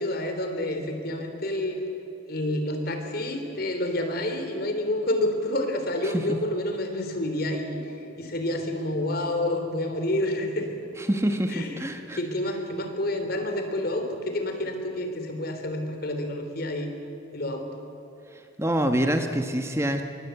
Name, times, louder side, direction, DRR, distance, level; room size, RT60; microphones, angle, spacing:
voice 1, 0.0-1.8 2.3-10.7 11.5-11.8 12.1-16.9 17.3-17.8, left 1 dB, 55° left, 5 dB, 3.6 m, -29 dB
voice 2, 11.1-12.2 18.6-20.0, right 1 dB, 15° right, 6 dB, 1.2 m, -25 dB
25.5 x 22.5 x 8.0 m, 2.9 s
head